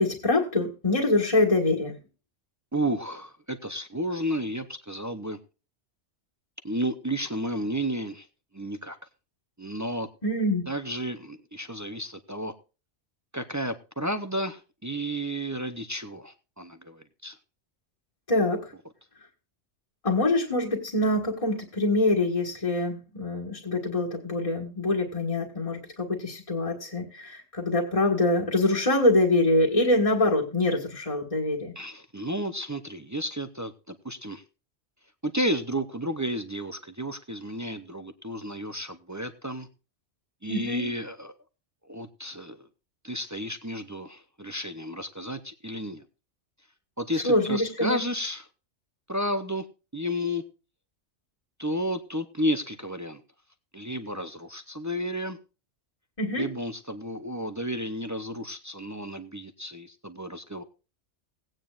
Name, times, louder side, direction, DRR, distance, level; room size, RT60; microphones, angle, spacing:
voice 1, 0.0-2.0 10.2-10.6 18.3-18.7 20.0-31.7 40.5-40.9 47.2-48.0 56.2-56.5, left 2 dB, 30° left, -2 dB, 1.7 m, -25 dB
voice 2, 2.7-5.4 6.6-8.3 8.5-9.0 9.6-10.1 10.7-12.5 13.3-17.4 31.8-34.4 35.2-39.7 40.4-41.3 41.9-42.7 43.0-46.0 47.0-48.5 49.1-49.6 49.9-50.4 51.6-53.2 53.7-55.4 56.3-60.6, equal, 25° right, 9 dB, 0.4 m, -32 dB
17.5 x 9.0 x 2.4 m, 0.32 s
omnidirectional pair, 1.2 m